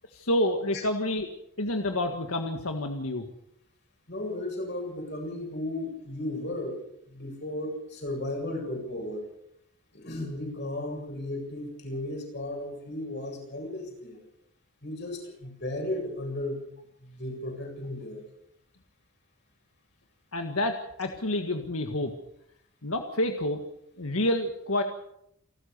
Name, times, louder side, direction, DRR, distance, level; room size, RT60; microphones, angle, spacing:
voice 1, 0.1-1.3 1.6-3.3 20.3-22.1 22.8-23.6 24.0-24.8, left 1 dB, 85° left, 5 dB, 1.8 m, -28 dB
voice 2, 4.1-6.8 7.1-9.2 9.9-14.2 14.8-16.6 17.0-18.2, left 1 dB, 50° left, 2 dB, 8.0 m, -35 dB
28.5 x 13.0 x 6.9 m, 0.77 s
head